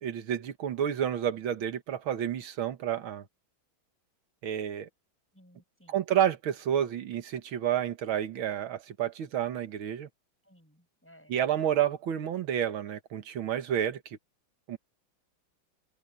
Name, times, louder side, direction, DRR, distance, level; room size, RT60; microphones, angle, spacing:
voice 1, 0.0-3.2 4.4-4.9 5.9-10.1 11.3-14.2 14.7-14.8, right 10 dB, 90° right, 2.1 m, -30 dB
voice 2, 5.3-6.0 10.4-11.4, equal, 5° left, 6.8 m, -59 dB
omnidirectional pair, 2.2 m